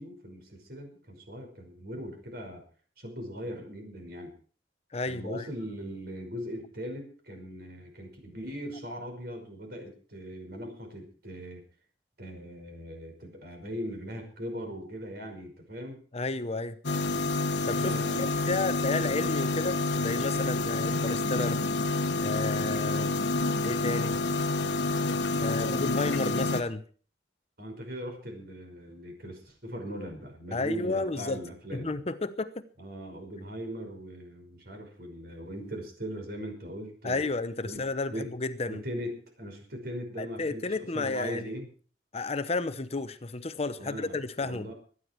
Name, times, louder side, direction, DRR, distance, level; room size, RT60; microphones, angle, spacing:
voice 1, 0.0-2.6 3.0-4.3 5.0-11.6 12.2-16.0 17.8-18.5 25.4-26.6 27.6-31.9 32.8-37.3 37.6-38.3 38.7-41.7 43.8-44.7, equal, 60° right, 3 dB, 5.5 m, -40 dB
voice 2, 4.9-5.4 16.1-16.8 17.6-21.6 22.2-23.1 23.6-24.2 25.4-26.8 30.5-31.4 31.7-32.6 37.0-38.8 40.2-41.5 42.1-44.7, left 3 dB, 35° left, 12 dB, 0.8 m, -32 dB
sound 1, 16.8-26.6, left 3 dB, 75° left, 1.4 m, -28 dB
25.0 x 9.8 x 4.6 m, 0.42 s
head